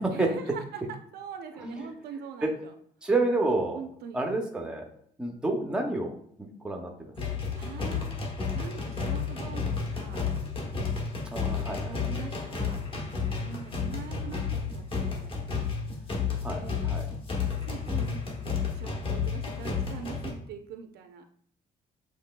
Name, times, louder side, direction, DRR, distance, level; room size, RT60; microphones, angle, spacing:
voice 1, 0.1-2.7 3.7-4.2 7.5-10.3 11.8-12.8 13.4-15.4 16.6-17.1 17.6-18.2 18.7-21.2, right 7 dB, 85° right, 6 dB, 0.6 m, -43 dB
voice 2, 1.6-1.9 2.4-2.5 3.0-3.8 4.1-4.9 5.2-6.1 6.6-7.1 11.3-11.9 16.4-17.1, right 2 dB, 5° right, 2 dB, 0.6 m, -29 dB
sound 1, 7.2-20.3, left 5 dB, 35° left, 1.0 m, -31 dB
7.4 x 3.2 x 2.2 m, 0.63 s
cardioid pair, 170°, 16 cm